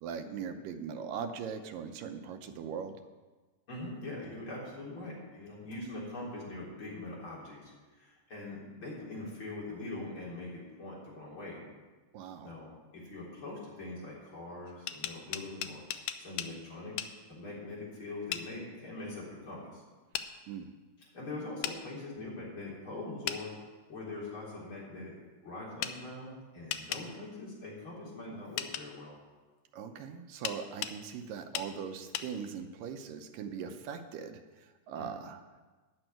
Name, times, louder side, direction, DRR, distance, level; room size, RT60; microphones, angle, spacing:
voice 1, 0.0-3.0 12.1-12.5 20.5-20.7 29.7-35.4, right 7 dB, 85° right, 7 dB, 2.5 m, -40 dB
voice 2, 3.7-11.6 12.4-15.8 16.2-19.8 21.1-23.5 23.9-25.1 25.4-29.2 34.9-35.1, left 2 dB, 40° left, -5 dB, 4.2 m, -43 dB
sound 1, 14.7-16.5 17.0-17.1 18.3-18.5 20.1-20.3 21.6-21.8 23.3-23.4 25.8-26.0 26.7-27.1 28.6-28.9 30.5-31.0 31.5-31.7 32.1-32.3, left 11 dB, 80° left, 2.0 m, -36 dB
11.5 x 6.2 x 9.0 m, 1.3 s
omnidirectional pair, 3.8 m